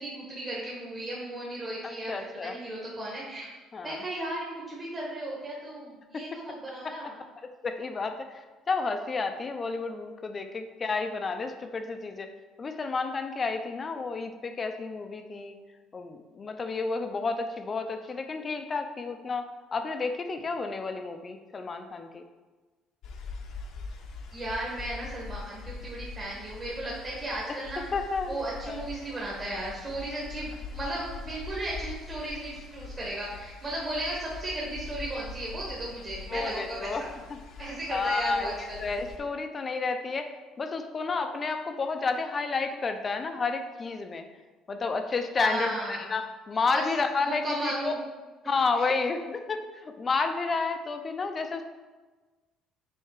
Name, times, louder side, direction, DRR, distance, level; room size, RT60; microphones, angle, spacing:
voice 1, 0.0-3.5 3.8-7.1 24.3-27.8 28.3-37.1 37.6-38.8 45.3-46.1 46.7-46.8 47.2-48.0 48.7-48.9, right 1 dB, 30° right, -5 dB, 1.5 m, -35 dB
voice 2, 1.8-2.6 3.7-4.0 6.1-6.4 7.4-12.3 12.6-15.5 15.9-22.2 27.5-27.6 27.9-28.4 28.6-28.8 36.3-37.0 37.3-40.3 40.6-44.2 44.7-47.9 48.4-51.6, left 4 dB, 30° left, 7 dB, 0.5 m, -31 dB
sound 1, 23.0-39.2, left 4 dB, 65° left, 0.8 m, -43 dB
6.6 x 3.5 x 4.8 m, 1.3 s
cardioid pair, 115°, 0 cm